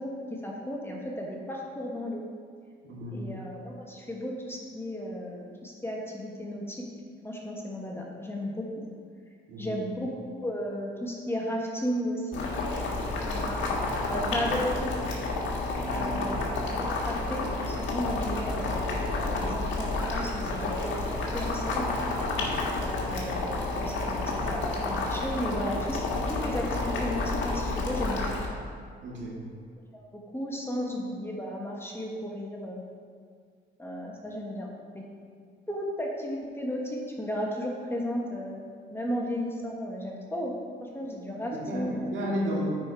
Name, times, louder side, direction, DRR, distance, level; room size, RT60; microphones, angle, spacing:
voice 1, 0.0-2.3 3.1-6.8 7.2-8.7 9.6-12.5 13.2-13.6 14.1-14.9 15.9-16.4 16.7-21.9 22.8-28.3 29.9-32.8 33.8-34.7 34.9-35.0 35.7-40.5 40.8-42.0, equal, 10° left, -2 dB, 1.4 m, -34 dB
voice 2, 2.8-3.3 9.5-9.8 15.8-16.1 29.0-29.4 41.5-42.7, equal, 70° right, -4 dB, 2.2 m, -33 dB
Boiling, 12.3-28.5, left 2 dB, 75° left, 1.6 m, -30 dB
9.0 x 5.0 x 4.7 m, 2.1 s
cardioid pair, 90°, 20 cm